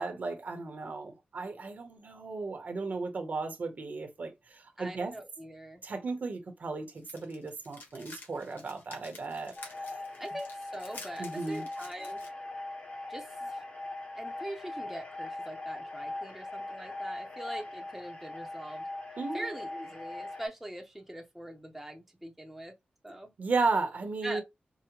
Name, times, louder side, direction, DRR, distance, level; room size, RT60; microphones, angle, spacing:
voice 1, 0.0-5.1 5.8-9.5 11.2-11.6 19.2-19.5 23.4-24.4, right 3 dB, 60° right, 0.9 m, -34 dB
voice 2, 4.8-5.8 10.2-12.2 13.1-13.6 14.2-18.9 19.3-22.7 23.0-23.3 24.2-24.4, right 1 dB, 5° right, 0.7 m, -43 dB
sound 1, 7.0-12.3, left 3 dB, 90° left, 1.3 m, -50 dB
sound 2, 9.6-20.5, left 2 dB, 40° left, 1.1 m, -40 dB
4.7 x 2.1 x 2.9 m
wide cardioid pair, 130°, 3 cm